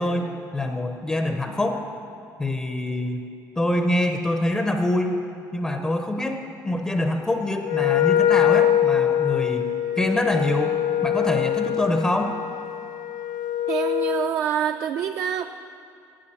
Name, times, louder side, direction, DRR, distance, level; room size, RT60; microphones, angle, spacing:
voice 1, 0.0-1.9 2.4-3.3 3.6-5.2 5.5-9.6 10.0-12.3, left 1 dB, 10° left, 4 dB, 0.5 m, -25 dB
Wind instrument woodwind instrument, 7.6-14.3, left 11 dB, 65° left, 0.6 m, -23 dB
voice 2, 13.7-15.5, right 9 dB, 50° right, 7 dB, 0.3 m, -26 dB
9.8 x 8.9 x 8.5 m, 2.5 s
cardioid pair, 175°, 7 cm